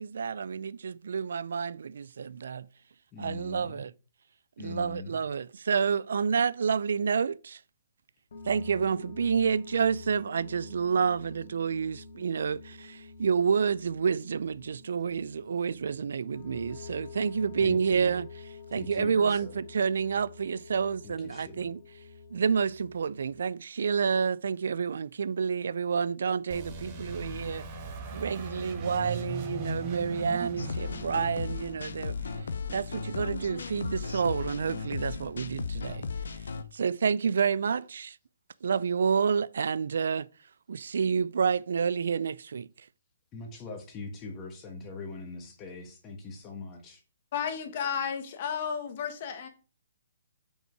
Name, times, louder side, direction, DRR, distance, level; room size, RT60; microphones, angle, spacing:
voice 1, 0.0-2.7 3.2-3.9 4.6-7.6 8.5-18.3 18.7-21.8 22.3-27.7 28.1-32.2 32.7-36.1 36.7-38.2 38.6-40.3 40.7-42.7, right 6 dB, 70° right, 0.4 m, -29 dB
voice 2, 3.1-3.8 4.6-5.2 17.6-18.1 18.7-19.5 21.0-21.7 43.3-47.0, left 3 dB, 15° left, 1.5 m, -42 dB
sound 1, 8.3-23.5, left 3 dB, 60° left, 1.9 m, -47 dB
sound 2, 26.5-33.1, right 2 dB, 25° right, 1.4 m, -39 dB
sound 3, 30.6-36.6, left 5 dB, 85° left, 0.8 m, -36 dB
voice 3, 47.3-49.5, left 7 dB, 35° left, 1.5 m, -32 dB
7.4 x 5.5 x 4.5 m
hypercardioid pair, 170°, 0 cm